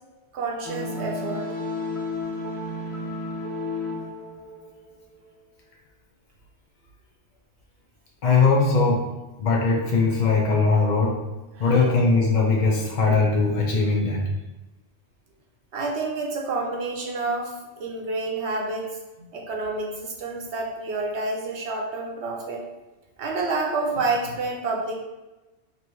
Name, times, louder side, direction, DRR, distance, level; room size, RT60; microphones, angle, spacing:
voice 1, 0.3-1.5 11.6-11.9 15.7-22.6 23.2-24.9, right 3 dB, 70° right, 0 dB, 0.9 m, -29 dB
sound 1, 0.6-5.2, left 2 dB, 15° left, 0.7 m, -32 dB
voice 2, 8.2-9.1 9.4-11.2 11.6-14.2, left 4 dB, 50° left, -2 dB, 0.7 m, -20 dB
3.1 x 2.8 x 4.5 m, 1.1 s
omnidirectional pair, 1.2 m